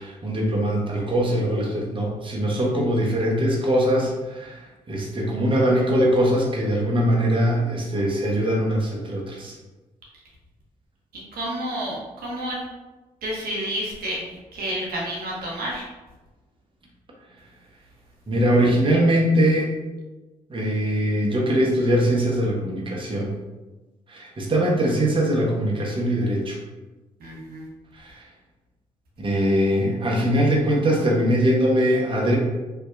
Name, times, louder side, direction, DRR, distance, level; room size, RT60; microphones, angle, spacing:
voice 1, 0.0-9.6 18.3-19.7 20.5-23.3 24.1-26.6 27.9-28.3 29.2-32.4, equal, 30° right, -2 dB, 0.7 m, -22 dB
voice 2, 11.3-12.6 13.2-14.3 14.5-15.8 27.2-27.7, right 1 dB, 70° right, -5 dB, 0.7 m, -30 dB
2.6 x 2.2 x 2.4 m, 1.2 s
hypercardioid pair, 40°, 16 cm